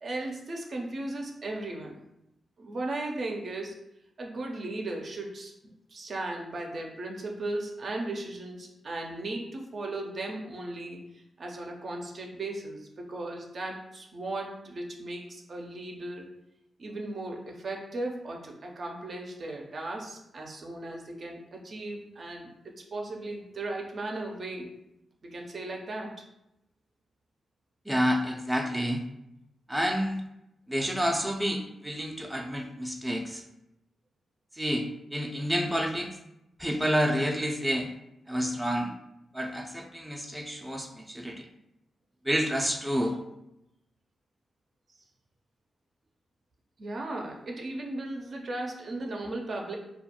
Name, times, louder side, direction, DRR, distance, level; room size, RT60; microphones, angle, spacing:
voice 1, 0.0-2.0 2.6-3.8 4.2-16.3 16.8-24.7 25.2-26.1 46.8-49.8, right 2 dB, 60° right, 0 dB, 0.5 m, -36 dB
voice 2, 27.9-29.0 29.7-30.2 30.7-33.4 34.5-36.1 36.6-37.9 38.3-38.9 39.3-41.5 42.2-43.2, equal, 5° right, 2 dB, 0.4 m, -29 dB
2.3 x 2.1 x 2.8 m, 0.85 s
supercardioid pair, 45°, 0 cm